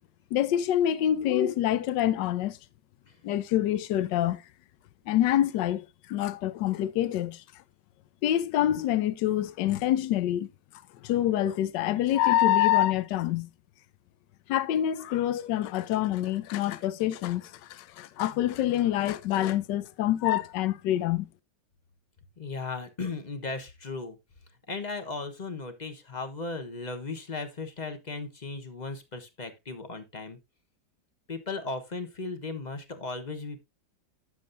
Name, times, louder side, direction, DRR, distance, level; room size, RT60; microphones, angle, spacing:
voice 1, 0.3-2.6 3.2-4.4 5.1-7.4 8.2-10.5 11.0-13.5 14.5-21.3, left 12 dB, 75° left, 1.3 m, -26 dB
voice 2, 22.4-24.2 24.7-30.4 31.3-33.7, left 3 dB, 30° left, 1.0 m, -36 dB
10.0 x 7.2 x 2.6 m
omnidirectional pair, 2.1 m